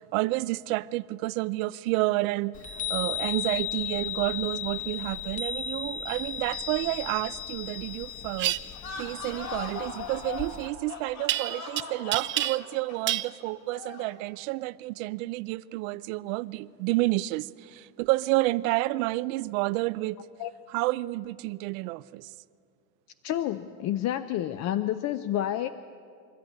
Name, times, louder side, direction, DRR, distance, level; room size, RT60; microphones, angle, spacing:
voice 1, 0.0-2.6 2.9-8.6 9.0-20.3 20.7-22.3, right 19 dB, 85° right, 0.6 m, -30 dB
Chime, 2.5-10.7, left 9 dB, 20° left, 1.0 m, -36 dB
sound 1, 8.4-8.6 11.3-11.8 12.1-12.8 13.1-13.3, right 13 dB, 30° right, 0.4 m, -28 dB
sound 2, 8.7-14.2, left 5 dB, 65° left, 4.6 m, -40 dB
voice 2, 23.2-25.7, left 12 dB, 40° left, 0.6 m, -29 dB
24.5 x 13.5 x 9.5 m
cardioid pair, 145°, 40 cm